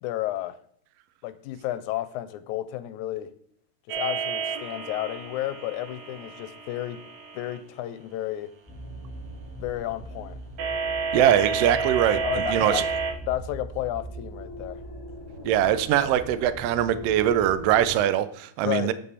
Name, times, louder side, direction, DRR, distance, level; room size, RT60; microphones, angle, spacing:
voice 1, 0.0-0.6 1.2-3.3 4.0-7.0 7.3-8.5 9.6-10.4 12.1-12.8 13.2-14.8 18.6-18.9, left 14 dB, 85° left, 12 dB, 2.0 m, -32 dB
sound 1, 3.9-7.6 10.6-13.1, right 5 dB, 70° right, 2.1 m, -30 dB
sound 2, 8.7-17.9, right 1 dB, 10° left, 1.0 m, -40 dB
voice 2, 11.1-12.8 15.4-18.9, right 11 dB, 85° right, 13 dB, 1.4 m, -22 dB
8.8 x 5.5 x 4.1 m, 0.64 s
omnidirectional pair, 3.5 m